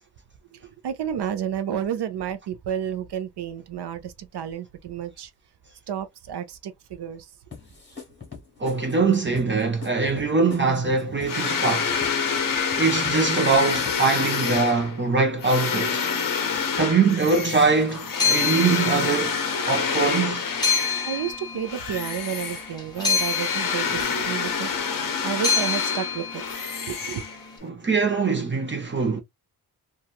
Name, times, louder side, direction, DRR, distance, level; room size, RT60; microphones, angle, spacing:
voice 1, 0.5-5.3 5.9-7.3 20.9-24.7 25.2-26.4 26.9-27.2, right 9 dB, 85° right, 0.6 m, -31 dB
sound 1, 7.5-14.9, left 5 dB, 30° left, 1.3 m, -43 dB
voice 2, 8.6-11.9 12.8-16.0 16.8-19.4 19.7-20.5 27.6-29.2, right 4 dB, 30° right, 0.6 m, -22 dB
sound 2, 11.3-21.3 21.7-27.7, left 6 dB, 55° left, 0.6 m, -27 dB
sound 3, 17.6-27.5, left 6 dB, 10° left, 0.9 m, -29 dB
2.9 x 2.3 x 2.4 m
wide cardioid pair, 140°, 39 cm